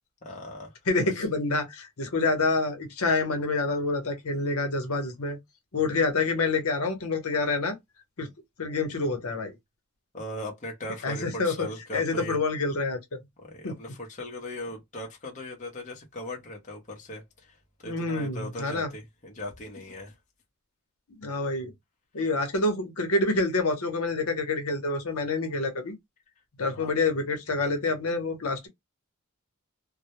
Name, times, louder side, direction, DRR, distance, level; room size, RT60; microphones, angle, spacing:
voice 1, 0.2-1.2 10.1-12.4 13.4-17.6 17.8-20.2 26.7-27.0, left 1 dB, 35° left, 0.7 m, -39 dB
voice 2, 0.9-5.4 5.7-7.8 8.2-8.3 8.6-9.5 11.0-11.7 11.9-13.2 13.6-13.7 17.9-18.9 21.2-21.7 22.1-26.0 26.6-28.7, left 3 dB, 75° left, 0.8 m, -27 dB
2.2 x 2.1 x 2.8 m
head